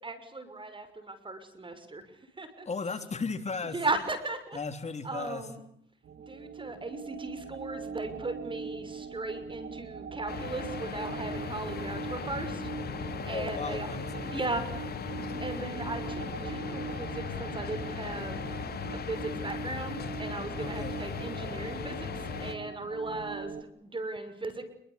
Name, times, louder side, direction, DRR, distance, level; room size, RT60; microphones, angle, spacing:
voice 1, 0.0-2.7 3.7-4.6 5.0-5.6 6.2-12.7 13.2-13.9 14.3-14.8 15.4-18.4 18.9-24.6, right 2 dB, 25° right, 11 dB, 6.2 m, -37 dB
voice 2, 2.6-3.8 4.5-5.5 13.3-14.6 20.6-21.0, left 4 dB, 35° left, 8 dB, 3.4 m, -36 dB
sound 1, 6.0-23.6, right 5 dB, 60° right, 2.1 m, -41 dB
sound 2, 10.3-22.5, left 6 dB, 55° left, 4.1 m, -38 dB
27.5 x 23.5 x 8.4 m, 0.70 s
cardioid pair, 90°, 20 cm